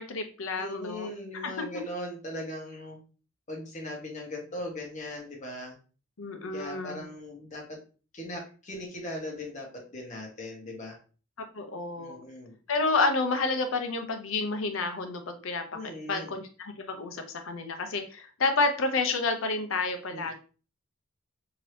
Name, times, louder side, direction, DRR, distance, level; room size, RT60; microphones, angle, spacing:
voice 1, 0.0-1.6 6.2-7.1 11.4-12.2 12.7-20.3, left 3 dB, 80° left, 7 dB, 0.6 m, -30 dB
voice 2, 0.6-3.0 3.5-5.7 6.5-7.7 8.1-11.0 12.0-12.5 15.7-16.3 20.1-20.3, left 1 dB, 35° left, 0 dB, 1.0 m, -39 dB
2.8 x 2.7 x 3.2 m, 0.37 s
head